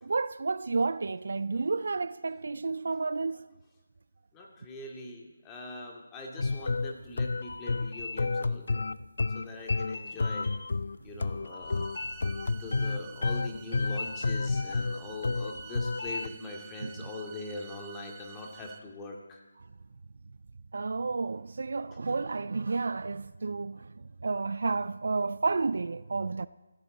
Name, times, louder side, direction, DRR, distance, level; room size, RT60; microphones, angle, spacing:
voice 1, 0.0-3.5 12.4-12.6 16.8-17.1 20.7-26.5, right 4 dB, 60° right, 0.4 m, -31 dB
voice 2, 4.3-8.8 9.3-10.5 11.0-11.9 12.3-19.4, left 2 dB, 15° left, 2.4 m, -42 dB
sound 1, 6.4-16.3, left 3 dB, 65° left, 0.5 m, -31 dB
sound 2, 11.6-18.8, right 10 dB, 20° right, 0.8 m, -50 dB
28.5 x 10.5 x 4.1 m
figure-of-eight pair, 155°, 0 cm